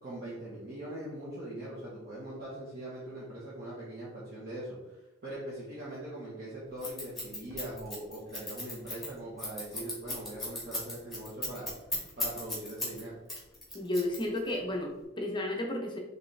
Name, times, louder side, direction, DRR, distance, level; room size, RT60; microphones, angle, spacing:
voice 1, 0.0-11.7 12.2-13.1, right 1 dB, 45° right, -9 dB, 1.2 m, -41 dB
Scissors, 6.8-13.0 13.3-14.6, left 2 dB, ahead, 1.4 m, -36 dB
voice 2, 13.7-16.0, left 1 dB, 20° left, 1 dB, 0.6 m, -32 dB
4.9 x 3.2 x 3.2 m, 1.0 s
head